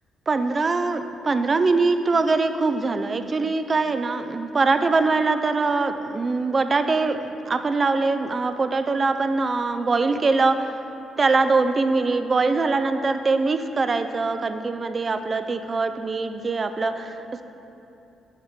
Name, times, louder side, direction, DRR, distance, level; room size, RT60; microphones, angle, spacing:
voice 1, 0.3-10.7 11.2-17.4, right 3 dB, 30° right, 9 dB, 0.3 m, -23 dB
6.4 x 3.6 x 6.2 m, 2.8 s
cardioid pair, 110°, 0 cm